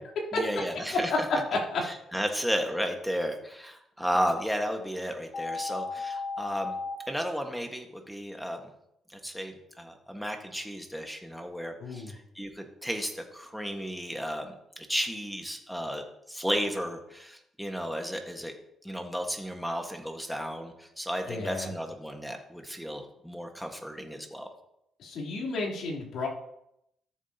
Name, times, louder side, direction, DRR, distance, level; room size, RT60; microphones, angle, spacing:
voice 1, 0.3-1.3 1.8-6.7 7.1-8.6 9.1-18.5 18.8-24.5, equal, ahead, 4 dB, 1.6 m, -33 dB
sound 1, 5.3-6.9, left 4 dB, 50° left, 1.8 m, -34 dB
voice 2, 11.8-12.1 21.3-21.7 25.0-26.3, left 3 dB, 70° left, -5 dB, 3.5 m, -33 dB
13.5 x 7.4 x 2.9 m, 0.78 s
cardioid pair, 90°, 0 cm